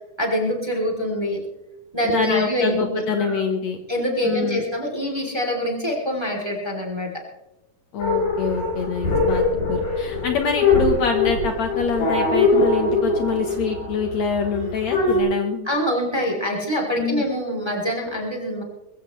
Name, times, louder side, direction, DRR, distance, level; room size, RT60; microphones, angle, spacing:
voice 1, 0.2-1.4 1.9-3.4 3.9-7.1 9.5-9.6 15.6-18.6, equal, 10° right, 0 dB, 2.8 m, -25 dB
voice 2, 2.0-3.8 4.2-4.6 7.9-15.7 17.0-17.2, left 6 dB, 65° left, 5 dB, 2.2 m, -25 dB
sound 1, 8.0-15.2, left 3 dB, 85° left, 8.7 m, -22 dB
21.5 x 15.5 x 3.2 m, 0.93 s
omnidirectional pair, 3.7 m